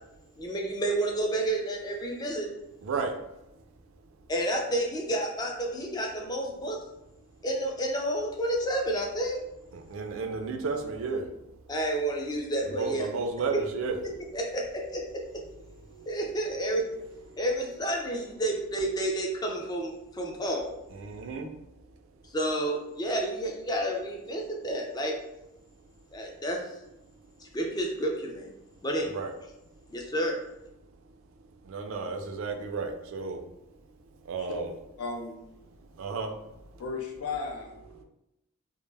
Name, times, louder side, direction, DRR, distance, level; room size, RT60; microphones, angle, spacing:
voice 1, 0.4-2.5 4.3-6.8 7.4-9.4 11.7-13.1 13.5-13.6 14.0-15.0 16.1-16.8 17.4-20.8 22.3-25.1 26.1-26.7 27.4-28.5 28.8-29.2 29.9-30.4, right 1 dB, 20° left, 1 dB, 0.3 m, -30 dB
voice 2, 2.8-3.1 9.7-11.2 12.7-14.0 21.0-21.5 29.1-29.3 31.7-33.4 34.3-34.6 36.0-36.3, right 4 dB, 65° right, 5 dB, 0.3 m, -32 dB
voice 3, 35.0-35.4 36.8-37.8, left 4 dB, 85° left, 1 dB, 0.5 m, -35 dB
2.1 x 2.0 x 3.2 m, 0.88 s
head